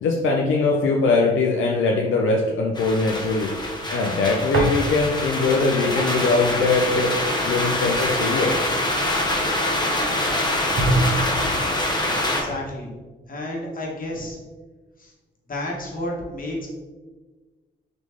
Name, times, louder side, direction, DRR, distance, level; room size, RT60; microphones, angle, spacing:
voice 1, 0.0-3.5 3.9-7.1 7.4-8.5, left 3 dB, 75° left, 0 dB, 0.5 m, -21 dB
sound 1, 2.7-12.4, left 1 dB, 20° left, 1.1 m, -25 dB
sound 2, 4.5-5.3 5.6-9.6 10.1-10.2 10.8-11.7, right 1 dB, 65° right, 1.0 m, -27 dB
voice 2, 12.2-12.9 13.3-14.4 15.0-15.1 15.5-16.7, left 1 dB, 45° left, -3 dB, 1.5 m, -31 dB
3.9 x 3.1 x 3.5 m, 1.3 s
supercardioid pair, 50°, 21 cm